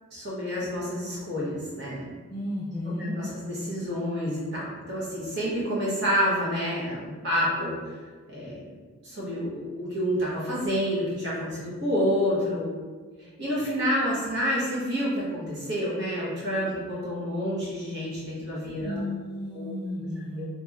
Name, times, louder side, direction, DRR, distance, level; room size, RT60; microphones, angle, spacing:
voice 1, 0.1-2.0 3.0-7.9 8.3-8.7 9.0-12.7 13.2-19.0 19.5-19.8 20.4-20.5, equal, 50° right, -7 dB, 1.0 m, -29 dB
voice 2, 2.3-3.2 18.8-20.5, left 1 dB, 25° left, -8 dB, 1.0 m, -33 dB
2.8 x 2.7 x 2.4 m, 1.4 s
head